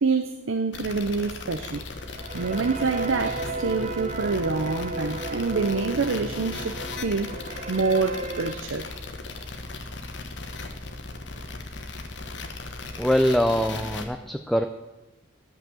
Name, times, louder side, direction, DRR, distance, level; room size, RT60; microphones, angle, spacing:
voice 1, 0.0-1.8 2.3-7.3 7.7-8.9, right 4 dB, 85° right, 7 dB, 0.7 m, -26 dB
sound 1, 0.7-14.0, left 3 dB, 65° left, 1.3 m, -37 dB
sound 2, 2.0-8.5, right 2 dB, 35° right, 0.7 m, -34 dB
voice 2, 12.9-14.7, equal, ahead, 6 dB, 0.4 m, -23 dB
14.0 x 5.8 x 7.3 m, 1.0 s
head